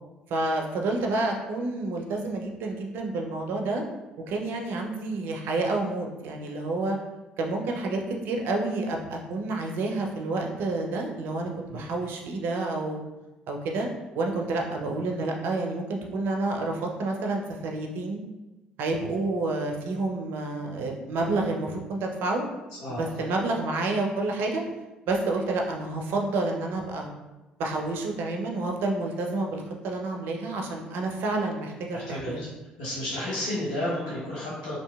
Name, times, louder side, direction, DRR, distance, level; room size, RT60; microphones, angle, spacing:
voice 1, 0.3-3.8 4.3-7.0 7.4-13.0 13.5-13.9 14.1-18.2 18.8-22.4 22.9-24.6 25.1-27.1 27.6-32.4, right 2 dB, 55° right, 1 dB, 0.4 m, -29 dB
voice 2, 31.9-32.5 32.8-34.8, left 1 dB, 75° left, -9 dB, 0.7 m, -32 dB
2.7 x 2.5 x 2.2 m, 1.1 s
figure-of-eight pair, 55°, 4 cm